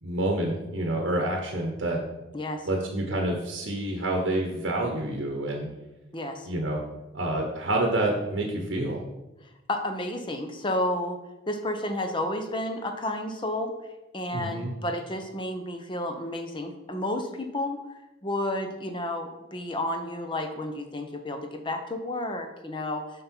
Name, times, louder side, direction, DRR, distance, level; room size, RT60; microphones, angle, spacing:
voice 1, 0.0-2.0 2.6-5.7 6.4-6.8 7.1-9.0 14.3-14.7, right 1 dB, 65° right, 1 dB, 1.0 m, -28 dB
voice 2, 6.1-6.5 9.7-11.2 11.5-13.7 14.1-17.8 18.2-23.0, left 1 dB, 25° left, 6 dB, 0.7 m, -31 dB
7.5 x 5.4 x 4.5 m, 1.0 s
head